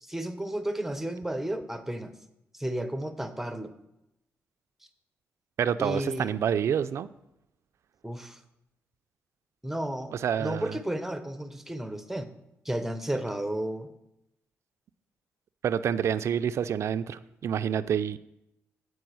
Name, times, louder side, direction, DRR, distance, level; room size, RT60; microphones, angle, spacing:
voice 1, 0.0-2.1 2.5-3.7 5.8-6.3 8.0-8.4 9.6-12.3 12.6-13.9, right 1 dB, 5° right, 9 dB, 0.7 m, -33 dB
voice 2, 5.6-7.1 10.1-10.8 15.6-18.2, right 8 dB, 65° right, 13 dB, 0.4 m, -28 dB
7.9 x 4.7 x 6.1 m, 0.86 s
cardioid pair, 80°, 5 cm